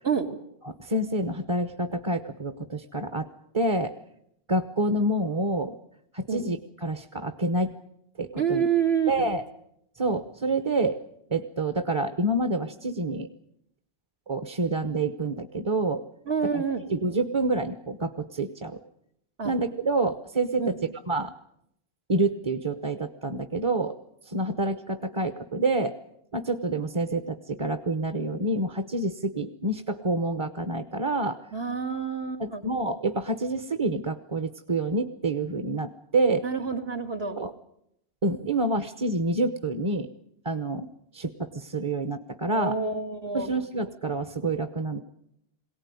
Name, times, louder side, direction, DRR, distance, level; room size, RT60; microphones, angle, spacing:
voice 1, 0.6-3.3 3.5-3.9 4.5-5.7 6.1-6.6 6.8-7.7 8.2-8.6 9.1-9.4 10.0-11.0 11.3-13.3 14.3-16.0 16.5-16.6 16.9-18.8 19.4-20.7 21.1-21.3 22.1-24.0 24.2-25.9 26.3-31.4 32.4-36.4 37.4-37.5 38.2-40.1 40.4-40.9 41.1-42.7 43.3-45.0, right 2 dB, 30° right, 8 dB, 1.0 m, -27 dB
voice 2, 8.4-9.3 16.3-16.8 19.4-19.5 20.6-20.8 31.5-32.6 36.4-37.4 42.5-43.5, right 6 dB, 75° right, 4 dB, 2.5 m, -28 dB
22.5 x 17.5 x 9.5 m, 0.77 s
omnidirectional pair, 1.0 m